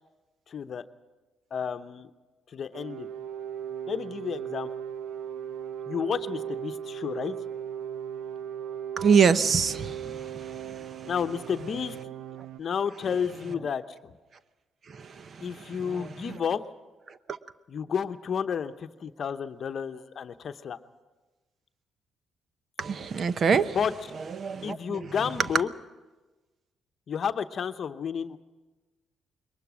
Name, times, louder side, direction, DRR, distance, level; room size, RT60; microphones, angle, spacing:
voice 1, 0.5-0.8 1.5-2.1 2.5-3.1 3.9-4.8 5.9-7.3 11.0-12.1 12.6-14.1 15.4-16.6 17.7-20.8 23.7-23.9 24.6-25.7 27.1-28.4, left 7 dB, 55° left, 10 dB, 0.9 m, -31 dB
sound 1, 2.7-12.6, right 9 dB, 85° right, 0.8 m, -37 dB
voice 2, 9.0-11.1 14.9-15.5 15.9-16.4 22.8-23.8 24.4-25.1, right 6 dB, 50° right, 13 dB, 0.8 m, -26 dB
21.5 x 19.5 x 6.2 m, 1.2 s
cardioid pair, 90°, 0 cm